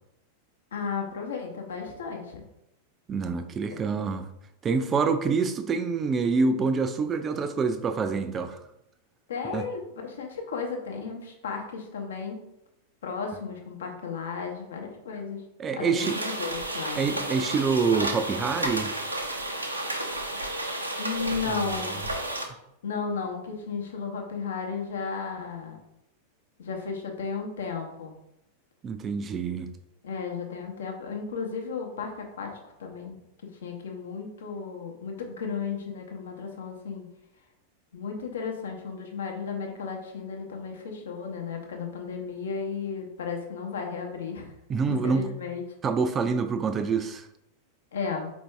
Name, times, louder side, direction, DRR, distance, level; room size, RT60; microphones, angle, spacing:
voice 1, 0.7-2.4 3.7-3.8 9.3-12.4 13.0-15.4 15.7-17.2 21.0-22.0 22.8-25.8 26.6-28.1 30.0-33.2 33.6-37.1 37.9-44.5 44.9-45.6 47.9-48.3, left 5 dB, 65° left, 0.8 m, -34 dB
voice 2, 3.1-4.3 4.6-8.6 9.5-9.6 15.6-16.2 17.0-18.9 21.3-21.6 28.8-29.7 44.7-45.3 45.8-47.3, right 5 dB, 25° right, 0.4 m, -26 dB
sound 1, 16.0-22.4, right 1 dB, 85° right, 0.6 m, -32 dB
4.4 x 2.6 x 3.3 m
figure-of-eight pair, 90°, 0 cm